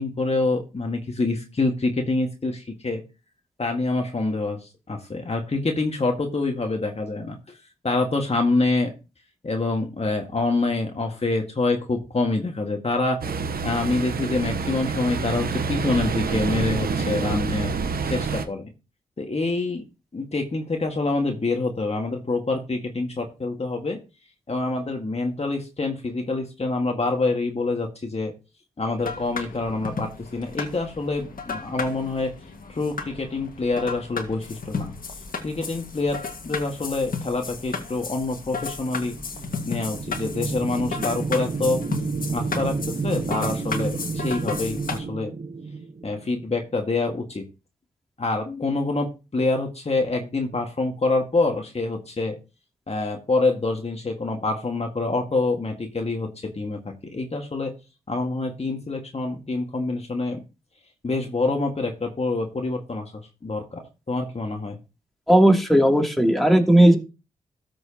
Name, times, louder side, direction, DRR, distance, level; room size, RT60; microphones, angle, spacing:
voice 1, 0.0-3.0 3.6-7.4 7.8-8.9 9.4-13.2 13.6-17.7 18.1-18.7 19.2-19.8 20.1-24.0 24.5-28.3 28.8-32.3 32.7-34.9 35.4-39.2 39.7-41.8 42.3-45.3 46.0-47.5 48.2-52.4 52.9-57.7 58.1-60.4 61.0-63.1 63.4-64.8, left 3 dB, 40° left, 3 dB, 1.8 m, -26 dB
Ocean, 13.2-18.5, right 5 dB, 70° right, 1.0 m, -27 dB
sound 1, 29.0-45.0, left 5 dB, 60° left, 1.8 m, -34 dB
sound 2, 39.0-46.6, right 4 dB, 45° right, 1.1 m, -31 dB
voice 2, 65.3-67.0, right 1 dB, ahead, 1 dB, 2.9 m, -16 dB
13.5 x 6.3 x 2.9 m, 0.30 s
supercardioid pair, 40°, 16 cm